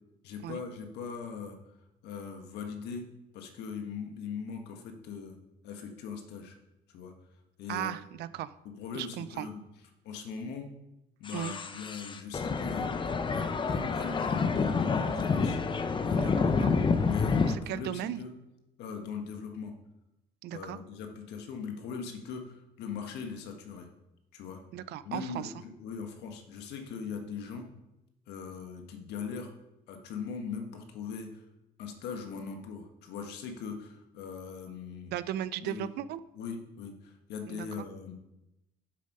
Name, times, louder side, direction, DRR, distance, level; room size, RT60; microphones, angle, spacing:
voice 1, 0.2-1.6 2.0-3.1 3.3-5.4 5.6-6.6 6.9-7.1 7.6-7.9 8.6-9.6 10.0-10.7 11.2-15.6 16.0-16.8 17.0-18.3 18.8-19.7 20.5-23.9 24.3-24.6 25.0-27.7 28.3-29.5 29.9-31.4 31.8-35.1 35.6-35.9 36.3-38.1, left 6 dB, 85° left, 4 dB, 1.5 m, -40 dB
voice 2, 7.7-8.5 8.9-9.5 11.3-11.5 16.2-16.3 16.6-16.7 17.5-18.2 20.4-20.8 24.7-25.6 35.1-36.2 37.5-37.9, right 12 dB, 75° right, 16 dB, 0.5 m, -36 dB
sound 1, 11.3-17.5, left 4 dB, 30° left, 0.8 m, -28 dB
7.5 x 7.4 x 5.5 m, 0.94 s
cardioid pair, 110°, 17 cm